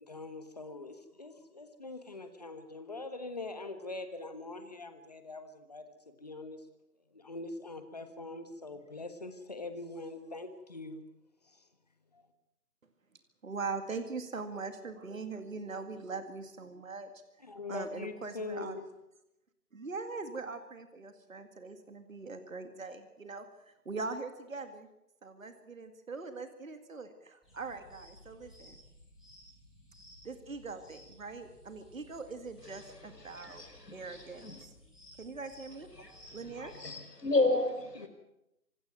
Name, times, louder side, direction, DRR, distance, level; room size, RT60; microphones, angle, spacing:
voice 1, 0.1-6.6 7.1-11.0 11.5-11.6 12.1-12.3 17.4-18.8 37.9-38.1, left 2 dB, 25° left, 9 dB, 1.4 m, -43 dB
voice 2, 13.4-17.1 17.7-18.8 19.7-24.9 25.2-28.8 30.2-33.6 33.9-34.7 35.2-35.9 36.3-36.7, right 4 dB, 55° right, 9 dB, 2.1 m, -41 dB
sound 1, 27.4-36.8, left 1 dB, ahead, 2.6 m, -57 dB
voice 3, 32.9-34.5 36.0-36.1 36.6-37.9, left 2 dB, 85° left, 7 dB, 4.9 m, -32 dB
26.0 x 12.5 x 9.3 m, 0.89 s
figure-of-eight pair, 170°, 47 cm